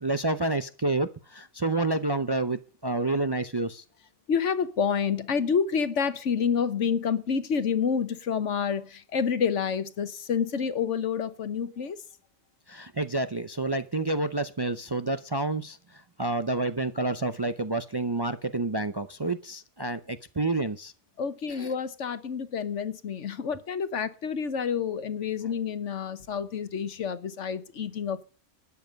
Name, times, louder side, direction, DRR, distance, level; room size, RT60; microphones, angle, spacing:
voice 1, 0.0-3.8 12.7-20.9 21.5-21.7, right 2 dB, 30° right, 0.5 m, -29 dB
voice 2, 4.3-12.0 21.2-28.2, left 6 dB, 80° left, 1.4 m, -28 dB
13.0 x 9.4 x 5.2 m
omnidirectional pair, 1.2 m